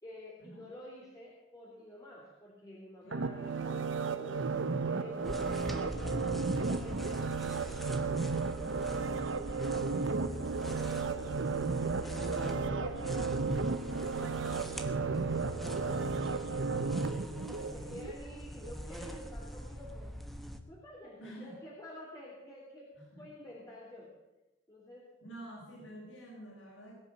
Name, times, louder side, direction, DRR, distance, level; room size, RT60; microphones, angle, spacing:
voice 1, 0.0-5.5 5.8-11.4 11.9-17.1 17.5-20.1 20.7-22.9 23.2-24.1 24.7-25.1, left 1 dB, 20° left, -5 dB, 3.5 m, -50 dB
voice 2, 3.0-3.4 12.1-12.5 21.2-21.6 22.9-23.2 25.2-27.0, right 1 dB, 85° left, -3 dB, 4.8 m, -48 dB
sound 1, 3.1-18.2 18.6-18.7, right 4 dB, 85° right, 0.9 m, -34 dB
sound 2, 5.2-20.6, equal, ahead, 1.3 m, -43 dB
21.0 x 7.0 x 8.8 m, 1.0 s
head